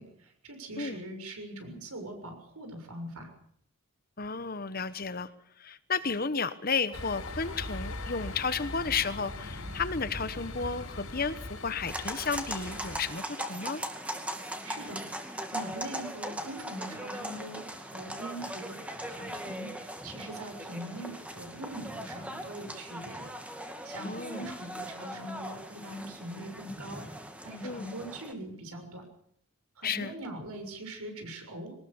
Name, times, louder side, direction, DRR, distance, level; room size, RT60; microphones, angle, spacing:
voice 1, 0.0-3.3 14.6-23.3 23.8-27.0 27.4-29.0 29.8-31.7, right 1 dB, 90° right, 6 dB, 6.7 m, -42 dB
voice 2, 4.2-5.3 5.6-13.8 24.0-24.5 27.6-27.9 29.8-30.1, left 5 dB, 40° left, 14 dB, 1.1 m, -33 dB
sound 1, 6.9-13.1, left 2 dB, 75° left, 6.4 m, -40 dB
sound 2, 11.9-28.3, right 1 dB, 5° right, 2.3 m, -40 dB
23.0 x 19.0 x 7.1 m, 0.67 s
head